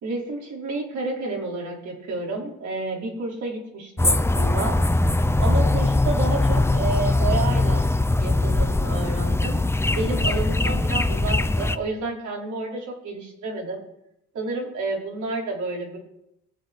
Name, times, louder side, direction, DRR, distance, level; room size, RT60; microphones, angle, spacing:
voice 1, 0.0-4.8 5.4-7.9 8.2-9.6 9.9-13.8 14.3-16.0, right 3 dB, 70° right, -2 dB, 5.2 m, -30 dB
sound 1, 4.0-11.8, left 2 dB, 10° left, 0.7 m, -21 dB
21.5 x 8.6 x 4.7 m, 0.81 s
cardioid pair, 90°, 30 cm